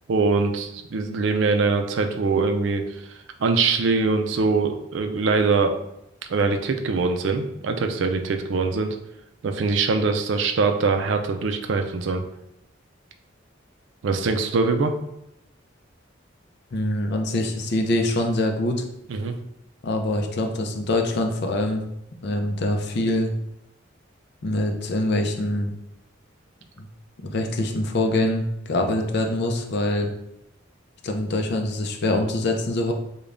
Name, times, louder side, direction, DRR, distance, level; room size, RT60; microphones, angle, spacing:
voice 1, 0.1-2.9 3.4-5.8 6.3-9.0 9.4-12.2 14.0-14.9 19.1-19.3, right 4 dB, 65° right, 5 dB, 0.4 m, -23 dB
voice 2, 16.7-18.9 19.8-21.8 22.2-23.3 24.4-25.7 27.2-30.1 31.0-32.9, left 1 dB, 55° left, 4 dB, 0.5 m, -24 dB
5.0 x 2.3 x 2.5 m, 0.82 s
head